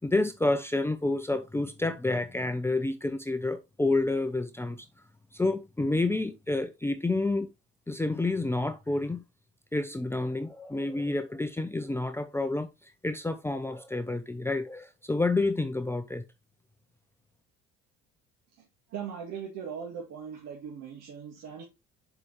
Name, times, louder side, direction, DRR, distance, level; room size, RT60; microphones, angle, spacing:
voice 1, 0.0-4.9 5.3-7.5 7.9-9.2 9.7-16.2, left 2 dB, 10° left, 0.7 m, -29 dB
voice 2, 18.9-21.6, right 7 dB, 60° right, 2.0 m, -39 dB
6.8 x 5.0 x 3.2 m
supercardioid pair, 80°, 29 cm